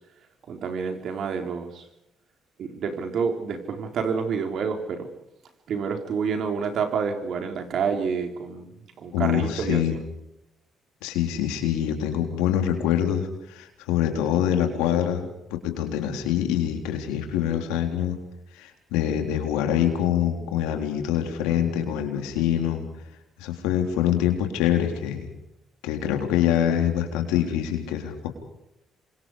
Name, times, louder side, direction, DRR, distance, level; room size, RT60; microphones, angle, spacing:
voice 1, 0.5-1.8 2.6-5.1 5.7-8.7 9.0-9.8, right 6 dB, 65° right, 5 dB, 4.2 m, -28 dB
voice 2, 9.1-10.0 11.0-15.3 15.6-18.2 18.5-22.8 23.4-25.3 25.8-28.3, left 10 dB, 90° left, 5 dB, 3.8 m, -25 dB
28.0 x 25.0 x 5.0 m, 0.83 s
supercardioid pair, 65°, 0 cm